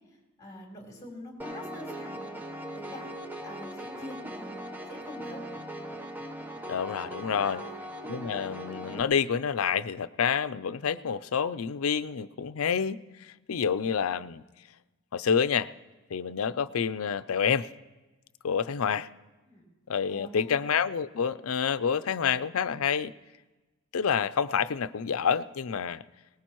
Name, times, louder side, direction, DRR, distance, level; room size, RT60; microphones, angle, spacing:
voice 1, 0.4-2.3 2.7-3.1 3.4-4.5 4.9-5.4 7.2-7.8 19.4-19.6 20.1-20.6, left 1 dB, 20° left, -2 dB, 4.0 m, -44 dB
Piano, 1.4-9.0, right 1 dB, 10° right, 0.9 m, -40 dB
voice 2, 6.7-7.6 8.1-13.0 13.5-14.4 15.1-15.7 16.1-17.7 18.4-19.1 19.9-23.1 23.9-26.0, left 7 dB, 80° left, 15 dB, 0.5 m, -28 dB
22.5 x 19.5 x 3.1 m, 1.2 s
head